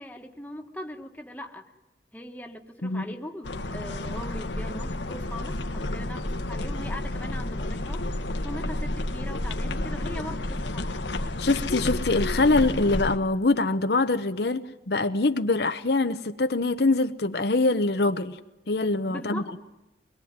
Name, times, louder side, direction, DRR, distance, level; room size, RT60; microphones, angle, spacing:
voice 1, 0.0-1.7 2.1-8.0 8.4-11.2 19.1-19.6, left 1 dB, 10° left, 1.6 m, -40 dB
sound 1, 3.4-13.2, left 1 dB, 85° left, 1.5 m, -31 dB
voice 2, 11.4-18.4 18.7-19.4, left 3 dB, 65° left, 0.9 m, -24 dB
23.5 x 21.5 x 9.6 m
head